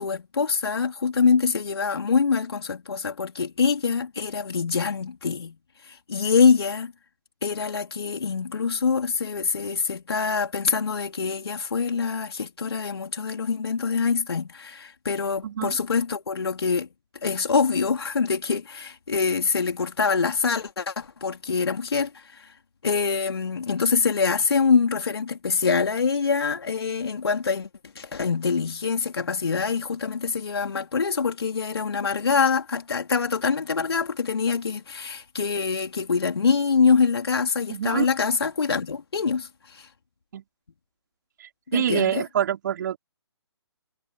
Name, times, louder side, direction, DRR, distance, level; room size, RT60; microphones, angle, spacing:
voice 1, 0.0-5.6 5.8-6.9 7.4-16.9 17.2-22.5 22.8-27.7 27.9-39.9 41.7-42.2, left 5 dB, 60° left, 4.2 m, -25 dB
voice 2, 15.4-15.7 37.7-38.1 40.3-40.4 41.4-43.0, right 10 dB, 45° right, 4.5 m, -26 dB
figure-of-eight pair, 140°, 15 cm